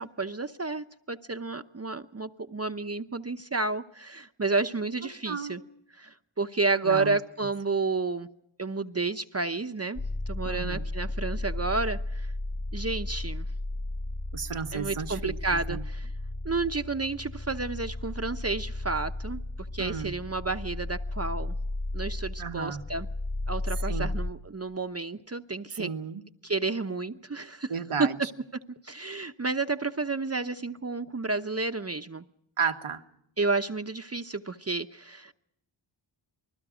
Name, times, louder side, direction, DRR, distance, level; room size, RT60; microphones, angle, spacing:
voice 1, 0.0-5.6 5.9-8.3 8.6-12.3 12.7-13.5 14.7-16.1 16.4-19.4 19.7-21.5 21.9-23.1 23.5-25.9 26.4-27.7 28.0-28.1 28.8-32.2 33.4-35.3, right 3 dB, 30° right, 7 dB, 0.9 m, -31 dB
voice 2, 5.3-5.6 6.8-7.2 10.4-10.9 14.3-15.4 15.7-15.8 19.8-20.2 22.4-22.8 23.8-24.1 25.7-26.2 27.7-28.1 32.6-33.0, right 6 dB, 85° right, 8 dB, 1.4 m, -33 dB
sound 1, 10.0-24.3, left 2 dB, 55° left, 3.1 m, -34 dB
29.0 x 20.5 x 5.1 m, 0.78 s
cardioid pair, 45°, 49 cm